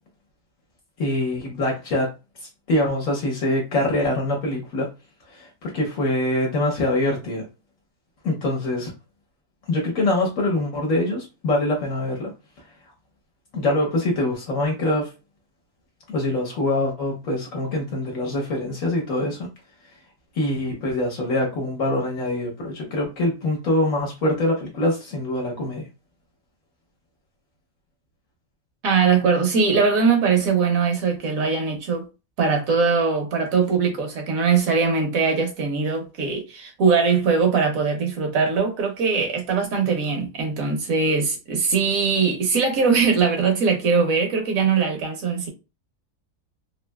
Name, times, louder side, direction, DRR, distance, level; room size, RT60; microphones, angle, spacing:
voice 1, 1.0-2.1 2.7-4.9 5.3-7.4 8.2-8.9 9.7-12.3 13.5-15.1 16.1-19.5 20.3-25.9, left 1 dB, 70° left, 1.1 m, -24 dB
voice 2, 28.8-32.1 32.4-45.5, right 5 dB, 75° right, 1.3 m, -21 dB
3.2 x 2.6 x 2.2 m
omnidirectional pair, 1.5 m